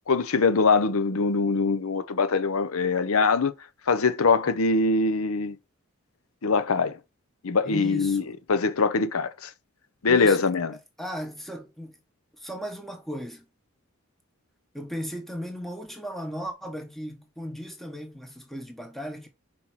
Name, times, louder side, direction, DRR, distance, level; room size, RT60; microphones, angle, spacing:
voice 1, 0.1-3.5 3.9-5.6 6.4-7.0 7.4-8.2 8.5-9.5 10.0-10.7, left 4 dB, 75° left, 0.7 m, -23 dB
voice 2, 7.6-8.4 10.1-10.4 11.0-12.0 12.4-13.5 14.7-19.3, equal, ahead, 1.1 m, -36 dB
5.6 x 4.5 x 6.0 m
head